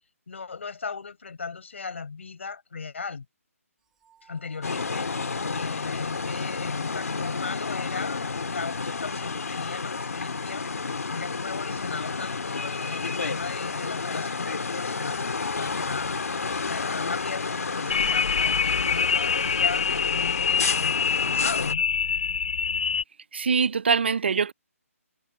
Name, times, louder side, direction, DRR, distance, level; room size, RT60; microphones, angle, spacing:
voice 1, 0.3-3.3 4.2-5.1 5.5-10.7 11.1-16.2 16.7-19.9 20.1-21.9, left 5 dB, 55° left, 4.3 m, -37 dB
sound 1, 3.8-9.7, right 8 dB, 5° right, 3.0 m, -60 dB
sound 2, 4.6-21.7, left 4 dB, 80° left, 2.0 m, -30 dB
sound 3, 17.9-23.0, left 6 dB, 30° left, 0.5 m, -25 dB
voice 2, 23.3-24.5, right 5 dB, 45° right, 0.5 m, -23 dB
hypercardioid pair, 175°, 8 cm